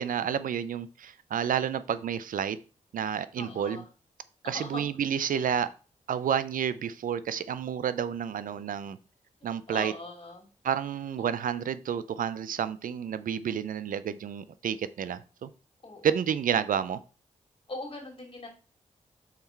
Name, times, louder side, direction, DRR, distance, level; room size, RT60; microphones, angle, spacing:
voice 1, 0.0-2.6 2.9-3.8 4.4-5.7 6.1-9.0 9.4-9.9 10.6-15.5 16.0-17.0, right 8 dB, 80° right, 0.4 m, -30 dB
voice 2, 3.4-3.8 4.4-4.8 9.7-10.5 11.2-11.3 15.8-16.0 17.7-18.5, left 2 dB, 40° left, 2.9 m, -40 dB
5.9 x 4.1 x 4.5 m
cardioid pair, 65°, 14 cm